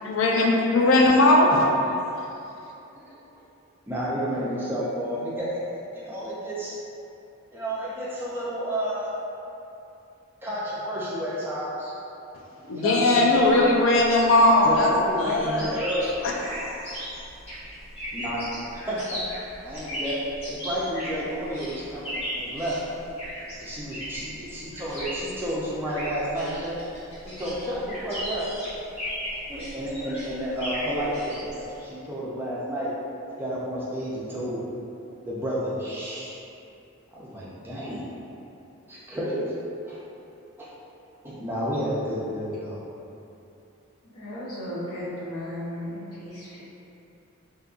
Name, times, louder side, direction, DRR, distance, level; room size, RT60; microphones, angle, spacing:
voice 1, 0.0-1.5 12.7-14.9 15.2-15.7 16.2-16.8, left 2 dB, 65° left, -1 dB, 0.3 m, -19 dB
voice 2, 3.9-5.6 5.9-6.7 7.5-9.1 10.4-11.9 12.7-13.5 14.6-16.1 18.1-18.5 18.7-19.2 19.6-20.2 20.5-22.8 23.6-26.7 27.4-28.5 29.3-32.9 33.4-34.6 35.3-36.4 37.1-38.2 38.9-39.5 39.9-40.0 40.6-40.7 41.2-42.8, equal, 10° right, -8 dB, 0.4 m, -31 dB
sound 1, 13.3-31.8, equal, 25° left, 0.6 m, -37 dB
voice 3, 44.1-46.6, left 1 dB, 85° left, -7 dB, 0.7 m, -35 dB
2.6 x 2.5 x 2.4 m, 2.8 s
head